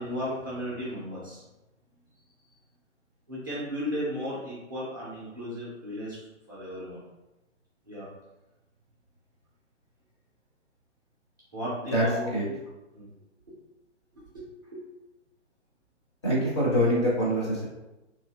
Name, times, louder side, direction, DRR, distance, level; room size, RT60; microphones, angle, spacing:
voice 1, 0.0-1.4 3.3-6.2 6.5-7.0 7.9-8.1 11.5-12.3 12.9-13.1 14.3-14.8, equal, 20° right, -7 dB, 0.5 m, -35 dB
voice 2, 16.2-17.7, equal, 25° left, -7 dB, 0.6 m, -24 dB
2.7 x 2.6 x 2.2 m, 0.99 s
figure-of-eight pair, 135°, 36 cm